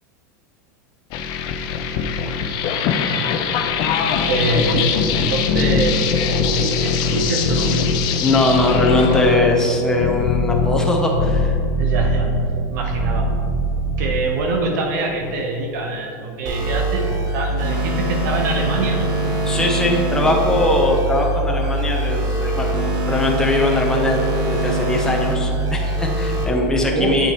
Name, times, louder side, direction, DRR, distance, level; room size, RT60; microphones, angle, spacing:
sound 1, 1.1-14.2, left 4 dB, 50° left, 0.6 m, -21 dB
voice 1, 4.3-6.1 6.4-7.8 11.8-12.4 12.7-13.2 14.0-19.2 26.8-27.2, right 3 dB, 70° right, 2 dB, 0.9 m, -24 dB
voice 2, 8.2-11.6 19.4-27.3, left 2 dB, 5° left, -1 dB, 0.8 m, -20 dB
sound 2, 16.4-26.4, right 2 dB, 40° right, 1.3 m, -22 dB
8.2 x 5.8 x 3.0 m, 2.8 s
supercardioid pair, 125°, 10 cm